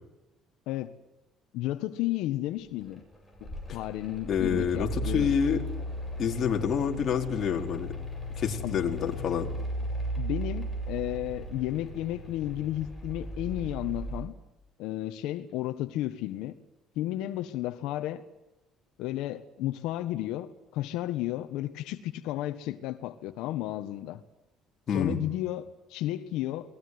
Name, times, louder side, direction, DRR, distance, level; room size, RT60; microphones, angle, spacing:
voice 1, 1.5-3.0 3.4-5.3 8.6-8.8 10.1-14.3 14.8-16.5 16.9-18.2 19.0-24.2 24.9-26.8, left 14 dB, 90° left, 8 dB, 1.5 m, -33 dB
Mechanical fan, 2.9-14.2, equal, ahead, 7.9 m, -36 dB
voice 2, 4.3-5.6 6.2-7.9 8.4-9.5 24.9-25.2, left 7 dB, 40° left, 2 dB, 4.6 m, -28 dB
29.5 x 20.5 x 9.7 m, 0.96 s
cardioid pair, 150°, 0 cm